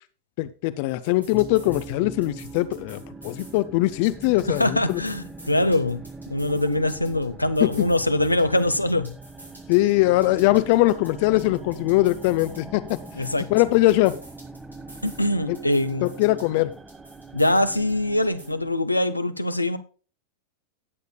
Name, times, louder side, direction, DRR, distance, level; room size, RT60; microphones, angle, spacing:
voice 1, 0.4-5.0 7.6-7.9 9.7-13.0 13.5-14.1 16.0-16.7, left 18 dB, 45° left, 0.7 m, -21 dB
sound 1, 0.9-1.9 2.2-3.6 3.9-7.3 7.5-9.9 10.2-12.6 12.9-15.3 15.5-17.9 18.2-18.5, right 1 dB, 85° right, 4.4 m, -49 dB
sound 2, 1.3-18.8, right 2 dB, 10° right, 1.2 m, -42 dB
voice 2, 4.5-6.0 6.3-9.1 13.1-13.5 15.0-16.1 17.3-19.8, left 1 dB, 85° left, 0.9 m, -23 dB
18.5 x 8.2 x 2.3 m
figure-of-eight pair, 90°, 0 cm